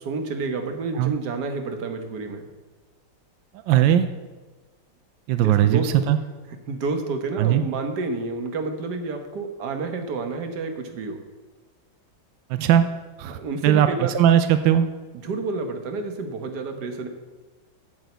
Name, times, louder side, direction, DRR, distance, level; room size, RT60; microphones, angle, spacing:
voice 1, 0.0-2.4 5.4-5.9 6.7-11.2 13.2-14.2 15.1-17.1, right 3 dB, 60° right, 6 dB, 1.7 m, -29 dB
voice 2, 3.7-4.0 5.3-6.2 7.4-7.6 12.5-12.8 13.2-14.8, right 10 dB, 80° right, 10 dB, 1.3 m, -19 dB
8.2 x 7.6 x 8.2 m, 1.3 s
omnidirectional pair, 2.0 m